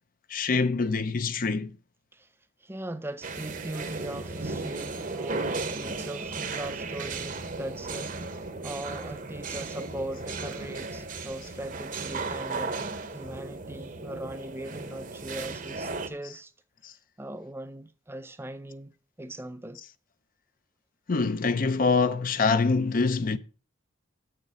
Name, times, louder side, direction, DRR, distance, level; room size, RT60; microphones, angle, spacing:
voice 1, 0.3-1.7 16.8-16.9 21.1-23.4, left 4 dB, 40° left, 0.5 m, -25 dB
voice 2, 2.6-8.3 8.6-12.8 13.1-16.5 17.2-18.9 19.2-19.8, right 1 dB, 10° right, 0.5 m, -39 dB
sound 1, 3.2-16.1, right 3 dB, 40° right, 0.8 m, -35 dB
7.9 x 6.7 x 6.1 m
head